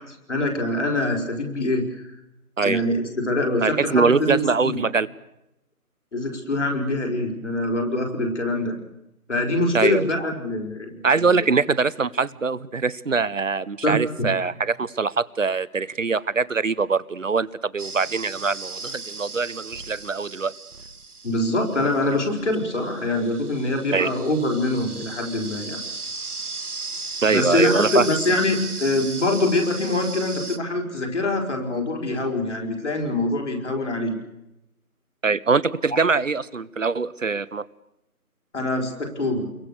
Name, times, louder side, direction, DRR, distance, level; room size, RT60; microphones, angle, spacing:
voice 1, 0.0-2.1 2.6-4.8 6.1-8.7 9.3-11.1 11.4-11.5 13.8-14.3 21.2-25.8 27.2-34.1 38.5-39.5, left 2 dB, 50° left, 2 dB, 4.8 m, -24 dB
voice 2, 3.6-5.1 9.7-10.1 11.0-20.5 23.9-24.1 27.2-28.1 35.2-37.7, right 4 dB, 55° right, 19 dB, 1.0 m, -23 dB
sound 1, 17.8-30.6, right 4 dB, 75° right, 1.9 m, -36 dB
28.5 x 22.5 x 6.8 m, 0.89 s
figure-of-eight pair, 170°, 45 cm